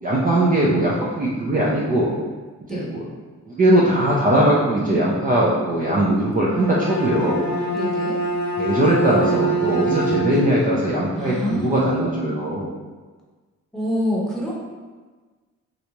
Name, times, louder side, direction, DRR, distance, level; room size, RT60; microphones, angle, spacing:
voice 1, 0.0-2.2 2.7-3.0 3.5-7.5 8.6-12.7, right 1 dB, 30° right, -6 dB, 0.5 m, -20 dB
Bowed string instrument, 6.3-10.6, right 2 dB, 70° left, 0.7 m, -25 dB
voice 2, 7.7-8.2 10.3-10.8 11.1-12.4 13.7-14.5, equal, ahead, -5 dB, 0.9 m, -27 dB
3.3 x 2.6 x 2.9 m, 1.3 s
cardioid pair, 90°, 30 cm